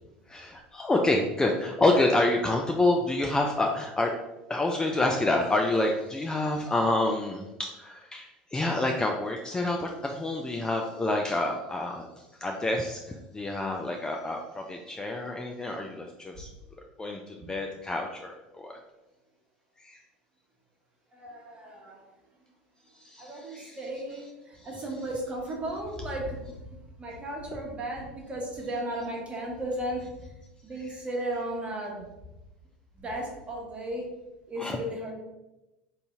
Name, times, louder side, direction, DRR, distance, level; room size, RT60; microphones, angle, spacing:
voice 1, 0.3-4.1 4.5-16.5 17.0-18.8 19.8-20.0 23.0-23.8 24.5-24.7 34.6-34.8, left 2 dB, 15° left, 1 dB, 0.4 m, -28 dB
voice 2, 21.1-22.1 23.2-30.3 30.6-32.1 32.9-34.1 34.5-35.1, right 1 dB, 25° right, -1 dB, 1.3 m, -35 dB
4.2 x 2.6 x 3.5 m, 0.99 s
figure-of-eight pair, 75°, 5 cm